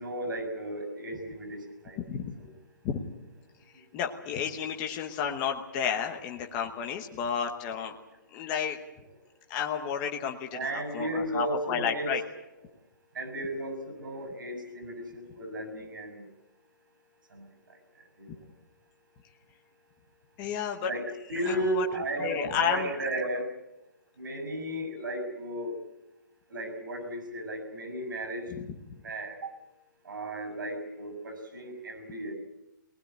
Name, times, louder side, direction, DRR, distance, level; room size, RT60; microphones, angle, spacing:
voice 1, 0.0-1.6 1.8-2.2 10.5-12.1 13.1-16.2 18.2-18.3 20.9-23.4 24.2-25.7 26.5-28.5 29.0-29.5 30.1-32.3, right 1 dB, 75° right, 7 dB, 6.7 m, -34 dB
voice 2, 2.0-2.3 2.8-3.0 3.9-7.9 8.3-8.8 9.5-12.2 20.4-20.9 21.4-22.9 28.5-28.7, left 8 dB, 15° left, 3 dB, 1.0 m, -32 dB
22.0 x 19.5 x 8.8 m, 0.95 s
hypercardioid pair, 180°, 11 cm